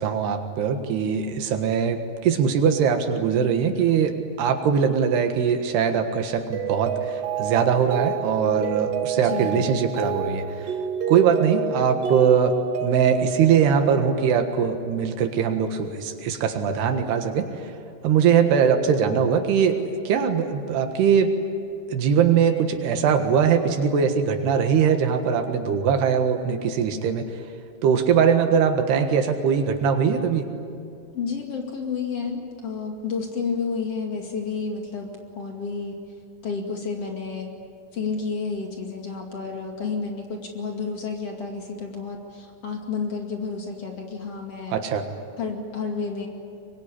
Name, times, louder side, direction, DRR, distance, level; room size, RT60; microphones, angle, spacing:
voice 1, 0.0-10.4 11.1-12.5 12.8-17.5 18.0-19.8 20.1-21.3 21.9-27.2 27.8-30.4 44.7-45.1, right 7 dB, 80° right, 6 dB, 3.7 m, -21 dB
Mallet percussion, 6.5-14.7, right 7 dB, 65° right, 3.0 m, -29 dB
voice 2, 9.2-9.6 31.1-36.0 36.4-37.5 37.9-44.8 45.4-46.3, left 5 dB, 40° left, 2 dB, 2.9 m, -30 dB
24.0 x 23.0 x 9.9 m, 2.5 s
omnidirectional pair, 4.6 m